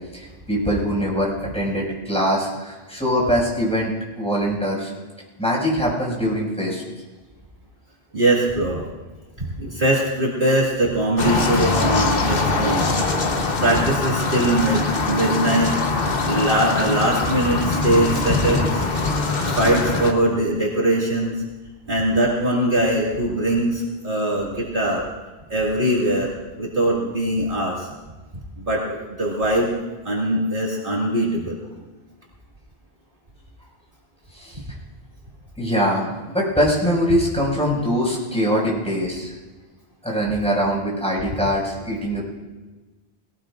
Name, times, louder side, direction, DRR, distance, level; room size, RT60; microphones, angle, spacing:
voice 1, 0.1-4.9 5.4-6.8 8.8-9.0 34.3-34.6 35.6-39.3 40.0-42.2, equal, 5° left, -5 dB, 6.0 m, -23 dB
voice 2, 8.1-8.8 9.4-12.9 13.6-15.7 16.2-18.9 19.5-21.4 21.9-25.0 25.5-26.3 26.6-27.9 28.6-29.7 30.0-31.6, right 1 dB, 50° right, -5 dB, 2.4 m, -21 dB
sound 1, 11.2-20.1, left 3 dB, 60° left, 1.3 m, -22 dB
21.5 x 17.5 x 2.5 m, 1.2 s
omnidirectional pair, 1.1 m